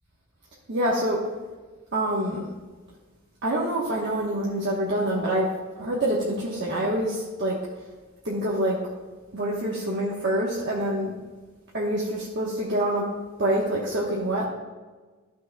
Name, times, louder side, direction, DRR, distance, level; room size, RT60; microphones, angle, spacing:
voice 1, 0.7-1.2 1.9-2.5 3.4-5.5 5.8-7.6 8.2-8.8 9.3-11.1 11.7-13.1 13.4-14.4, right 1 dB, 55° right, -6 dB, 1.2 m, -26 dB
13.0 x 6.2 x 2.3 m, 1.3 s
head